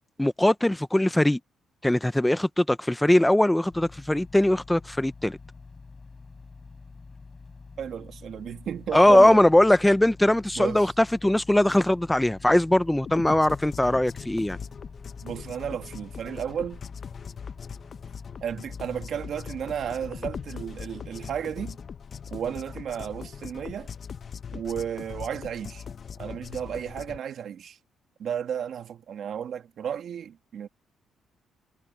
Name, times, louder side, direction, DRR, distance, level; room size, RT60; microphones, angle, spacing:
voice 1, 0.2-1.4 1.8-5.4 8.9-14.6, left 1 dB, 5° left, 0.6 m, -21 dB
sound 1, 3.7-21.9, left 4 dB, 30° left, 3.7 m, -47 dB
voice 2, 7.8-9.4 10.6-10.9 15.2-16.8 18.4-21.8 22.3-23.9 24.5-25.8 26.2-27.8 28.2-30.7, right 8 dB, 65° right, 2.0 m, -33 dB
sound 2, 13.1-27.2, left 6 dB, 50° left, 0.7 m, -40 dB
cardioid pair, 90°, 0 cm